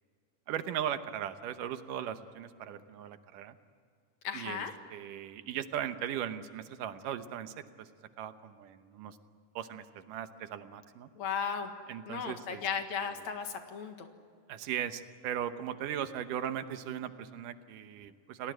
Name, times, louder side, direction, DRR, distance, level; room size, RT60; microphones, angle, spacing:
voice 1, 0.5-3.6 4.3-7.9 8.2-9.2 9.6-11.1 11.9-12.6 14.5-18.5, right 10 dB, 80° right, 10 dB, 2.6 m, -38 dB
voice 2, 4.2-4.7 11.2-11.7 12.1-14.1, left 7 dB, 60° left, 6 dB, 2.9 m, -35 dB
29.5 x 18.5 x 9.2 m, 2.2 s
omnidirectional pair, 3.7 m